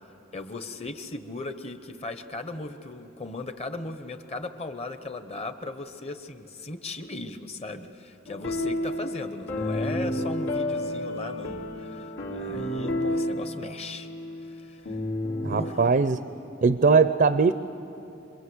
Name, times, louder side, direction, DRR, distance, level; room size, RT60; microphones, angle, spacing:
voice 1, 0.3-14.1 14.4-14.9 15.5-15.9, left 2 dB, 35° left, 9 dB, 1.1 m, -37 dB
sound 1, 8.3-15.7, left 1 dB, 80° left, 3.1 m, -31 dB
voice 2, 15.4-16.2 16.6-17.5, right 4 dB, 50° right, 12 dB, 0.5 m, -20 dB
26.5 x 22.5 x 8.0 m, 2.9 s
head